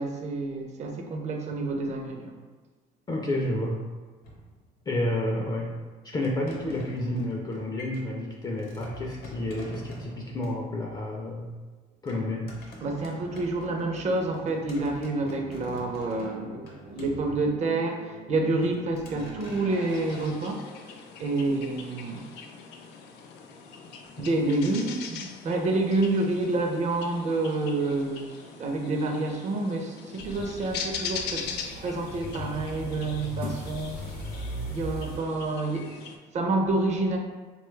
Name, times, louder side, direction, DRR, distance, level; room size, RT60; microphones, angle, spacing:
voice 1, 0.0-2.3 12.8-20.6 20.9-22.3 24.2-31.5 31.8-34.2 34.7-36.0 36.3-37.2, right 2 dB, 45° right, 2 dB, 0.5 m, -28 dB
voice 2, 3.1-3.8 4.9-5.7 6.0-11.5 12.0-12.5, left 1 dB, 25° left, -1 dB, 0.4 m, -30 dB
sound 1, 4.2-5.0 6.2-10.6 12.1-17.8 18.3-20.3, left 2 dB, 65° left, 0.8 m, -46 dB
sound 2, 19.9-36.2, left 6 dB, 85° left, 0.4 m, -41 dB
sound 3, 30.2-35.2, right 1 dB, 90° right, 0.8 m, -38 dB
3.0 x 2.3 x 3.1 m, 1.3 s
cardioid pair, 110°, 17 cm